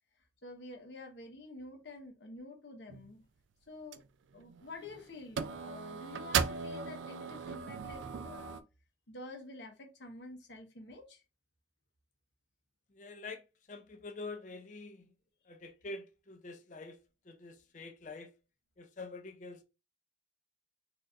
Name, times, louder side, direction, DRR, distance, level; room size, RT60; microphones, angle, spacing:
voice 1, 0.4-3.2 3.7-4.0 4.3-8.6 9.1-11.2, left 2 dB, 70° left, 1.1 m, -49 dB
sound 1, 2.9-3.1 3.9-4.1 4.4-4.9 5.4-8.6, right 6 dB, 90° right, 0.4 m, -37 dB
voice 2, 13.0-13.4 13.7-15.1 15.5-17.0 17.3-18.3 18.8-19.6, left 3 dB, 40° left, 0.5 m, -46 dB
4.0 x 2.7 x 2.4 m
head